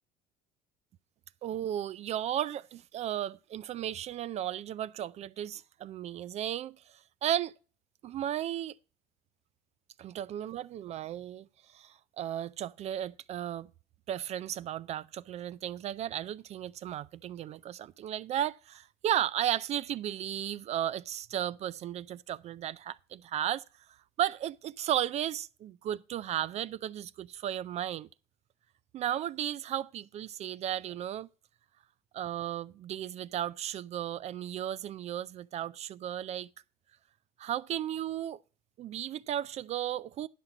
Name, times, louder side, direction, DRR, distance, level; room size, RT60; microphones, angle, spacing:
voice 1, 1.4-6.7 7.2-7.5 8.0-8.7 10.0-13.7 14.1-23.6 24.2-28.1 28.9-31.3 32.1-36.5 37.4-38.4 38.8-40.3, right 11 dB, 45° right, 0.4 m, -34 dB
10.5 x 5.9 x 4.9 m
supercardioid pair, 110°, 16 cm